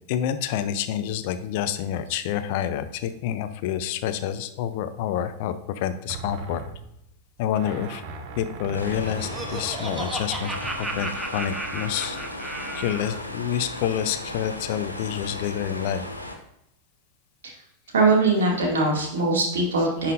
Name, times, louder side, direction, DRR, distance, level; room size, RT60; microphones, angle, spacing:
voice 1, 0.1-5.5 5.8-6.6 7.4-8.0 8.4-10.5 10.8-12.2 12.8-16.0, left 10 dB, 50° left, 11 dB, 0.5 m, -28 dB
sound 1, 6.1-11.3 12.0-12.1, right 2 dB, 45° right, 0.8 m, -39 dB
sound 2, 8.7-16.4, left 1 dB, 85° left, 0.9 m, -36 dB
Laughter, 8.7-13.2, right 2 dB, 10° right, 0.9 m, -34 dB
voice 2, 17.9-20.1, right 3 dB, 65° right, 0 dB, 2.2 m, -21 dB
10.5 x 5.7 x 2.5 m, 0.81 s
figure-of-eight pair, 90°, 0 cm